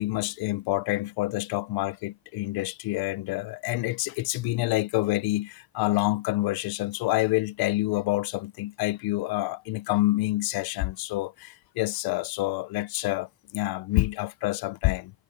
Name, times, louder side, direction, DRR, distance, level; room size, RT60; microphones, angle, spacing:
voice 1, 0.0-15.1, left 19 dB, 90° left, 0.8 m, -27 dB
cardioid pair, 105°, 36 cm